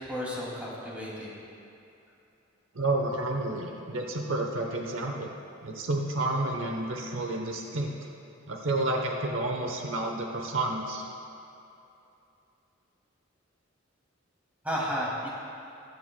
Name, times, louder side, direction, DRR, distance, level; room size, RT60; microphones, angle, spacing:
voice 1, 0.0-1.3 14.6-15.3, equal, 10° right, -6 dB, 2.4 m, -33 dB
voice 2, 2.7-5.3 5.6-7.9 8.5-11.1, right 2 dB, 70° right, 2 dB, 0.9 m, -30 dB
21.5 x 9.1 x 2.2 m, 2.7 s
head